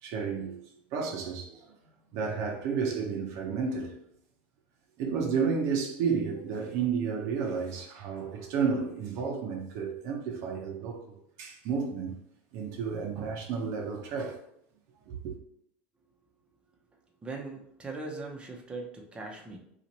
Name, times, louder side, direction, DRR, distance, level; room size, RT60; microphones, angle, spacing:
voice 1, 0.0-0.6 0.9-1.7 2.1-3.9 5.0-12.2 12.5-14.4 15.1-15.3, right 5 dB, 60° right, 0.7 m, -32 dB
voice 2, 16.9-19.6, right 3 dB, 15° right, 0.8 m, -40 dB
2.9 x 2.5 x 4.1 m
hypercardioid pair, 100°, 6 cm